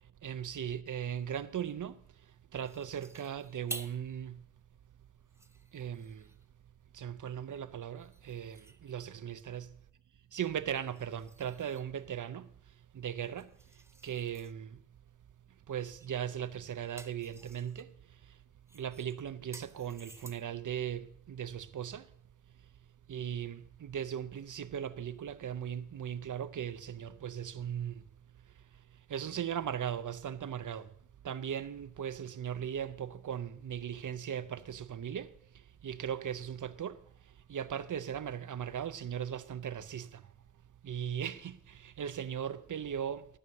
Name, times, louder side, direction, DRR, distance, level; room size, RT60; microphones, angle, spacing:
voice 1, 0.2-2.0 2.5-4.4 5.7-6.3 6.9-9.7 10.3-12.5 12.9-13.5 14.0-14.8 15.7-17.9 18.7-22.0 23.1-28.0 29.1-30.9 31.2-35.3 35.8-37.0 37.5-40.2 40.8-43.3, right 9 dB, 75° right, 0.6 m, -38 dB
sound 1, 2.6-4.1 4.6-4.7 5.2-6.5 8.0-9.2 10.8-12.0 13.2-14.5 16.0-16.2 16.6-17.9 18.7-20.6, right 1 dB, 10° right, 0.5 m, -51 dB
12.5 x 6.3 x 6.4 m
wide cardioid pair, 115°, 31 cm